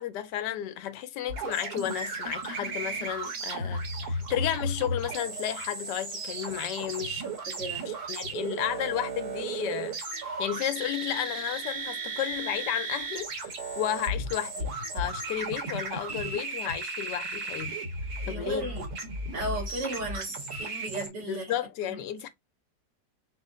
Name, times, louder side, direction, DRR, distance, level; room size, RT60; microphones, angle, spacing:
voice 1, 0.0-7.2 7.9-10.0 10.2-17.8 18.3-18.7 21.2-22.3, left 11 dB, 75° left, 1.2 m, -33 dB
sound 1, 1.3-21.1, right 2 dB, 60° right, 1.6 m, -35 dB
voice 2, 7.2-7.9 18.2-18.9 19.3-21.5 21.9-22.0, right 1 dB, 80° right, 2.7 m, -35 dB
5.0 x 2.1 x 3.7 m
omnidirectional pair, 1.9 m